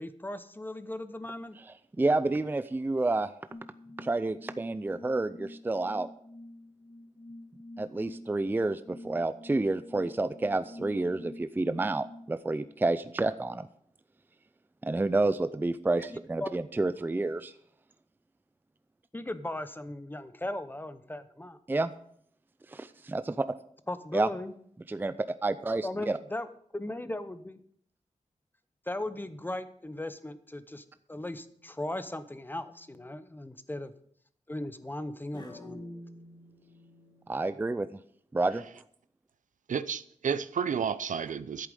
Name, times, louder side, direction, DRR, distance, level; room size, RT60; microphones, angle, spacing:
voice 1, 0.0-1.6 16.1-16.5 19.1-21.6 23.9-24.5 25.8-27.6 28.9-33.9 34.5-35.8, left 1 dB, 15° left, 0.7 m, -38 dB
voice 2, 2.0-3.3 4.0-6.1 7.8-13.7 14.8-17.5 21.7-21.9 22.7-23.4 24.1-24.3 24.9-25.1 25.4-26.2 37.3-37.9 38.3-38.6, right 2 dB, 15° right, 0.4 m, -29 dB
sound 1, 3.5-12.3, left 1 dB, 75° left, 5.0 m, -48 dB
sound 2, 31.5-31.9 32.5-33.1 35.3-37.2, left 1 dB, 35° left, 2.1 m, -48 dB
voice 3, 39.7-41.7, right 7 dB, 85° right, 0.5 m, -31 dB
11.0 x 8.2 x 5.3 m
wide cardioid pair, 115°, 13 cm